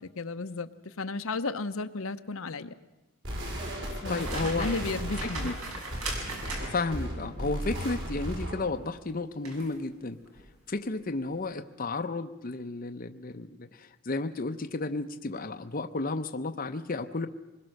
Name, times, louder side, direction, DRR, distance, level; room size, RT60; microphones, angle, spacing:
voice 1, 0.2-2.7 4.0-5.6, left 3 dB, 70° left, 9 dB, 0.8 m, -34 dB
sound 1, 3.2-8.7, equal, 55° right, 5.3 m, -35 dB
voice 2, 4.1-4.7 5.2-5.5 6.6-10.2 10.7-17.3, left 3 dB, 40° left, 7 dB, 0.7 m, -33 dB
sound 2, 4.1-7.0 9.4-9.7 10.2-10.4, right 2 dB, 80° right, 6.0 m, -38 dB
25.5 x 21.5 x 6.5 m, 1.1 s
head